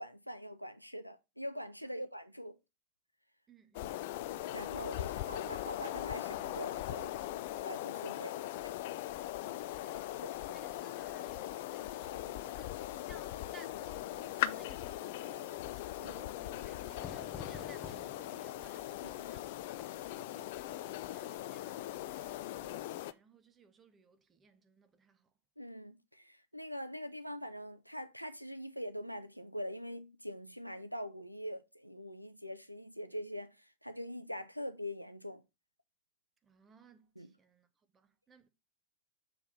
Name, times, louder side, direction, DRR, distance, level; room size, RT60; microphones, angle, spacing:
voice 1, 0.0-2.6 4.5-7.1 7.6-8.4 8.6-8.8 16.0-16.1 19.2-19.3 25.6-35.4 37.2-37.3, equal, 90° right, 0.5 m, -43 dB
voice 2, 3.5-4.1 9.4-19.7 20.0-25.3 36.4-38.5, right 5 dB, 20° right, 1.0 m, -60 dB
sound 1, 3.7-23.1, left 14 dB, 50° left, 0.4 m, -40 dB
sound 2, 14.3-16.0 17.7-19.3 21.1-22.8, right 6 dB, 55° right, 2.4 m, -68 dB
Fire / Fireworks, 17.0-22.5, left 6 dB, 25° left, 0.8 m, -52 dB
7.0 x 3.6 x 5.5 m
figure-of-eight pair, 90°, 0 cm